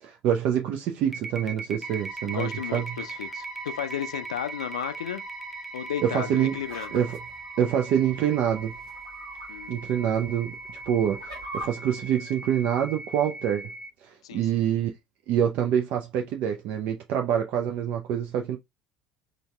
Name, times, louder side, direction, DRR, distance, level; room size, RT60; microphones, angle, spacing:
voice 1, 0.0-2.8 6.0-6.6 6.9-7.2 7.6-8.7 9.7-10.5 10.9-13.6 14.0-14.9 15.3-18.6, right 9 dB, 50° right, 0.5 m, -26 dB
sound 1, 1.1-13.9, right 3 dB, ahead, 0.6 m, -40 dB
sound 2, 1.8-12.0, right 2 dB, 20° right, 1.4 m, -45 dB
voice 2, 2.2-5.2 5.7-6.9 9.5-9.8 14.2-14.5, left 10 dB, 70° left, 0.4 m, -34 dB
sound 3, 6.5-7.9 8.8-9.5 9.9-10.0 10.7-11.7, right 2 dB, 80° right, 2.1 m, -40 dB
3.9 x 3.3 x 2.3 m
figure-of-eight pair, 60°, 3 cm